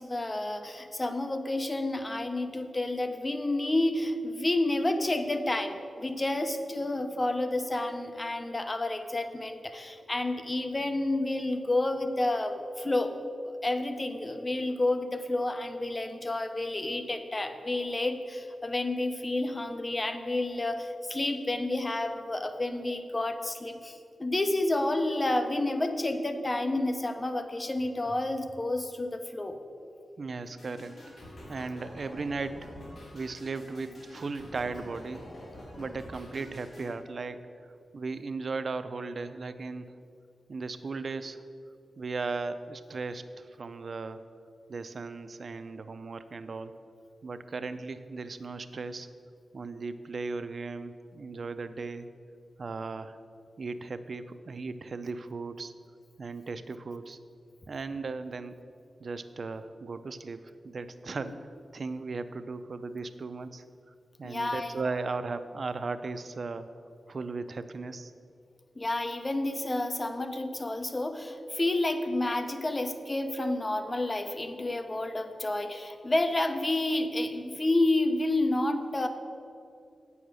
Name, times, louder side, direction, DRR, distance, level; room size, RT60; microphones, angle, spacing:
voice 1, 0.0-13.1 13.6-29.6 64.2-64.8 68.8-79.1, left 2 dB, 30° left, 7 dB, 0.9 m, -30 dB
voice 2, 30.2-30.9 31.5-32.7 33.1-35.3 35.8-37.4 37.9-39.9 40.5-41.4 42.0-44.2 44.7-46.8 47.2-49.1 49.5-52.1 52.6-53.2 53.6-55.7 56.2-57.2 57.7-58.6 59.0-63.6 64.2-66.7 67.1-68.1, right 4 dB, 60° right, 11 dB, 0.5 m, -37 dB
sound 1, 30.6-36.9, left 1 dB, 65° left, 2.6 m, -47 dB
8.9 x 7.1 x 6.3 m, 2.5 s
cardioid pair, 75°, 0 cm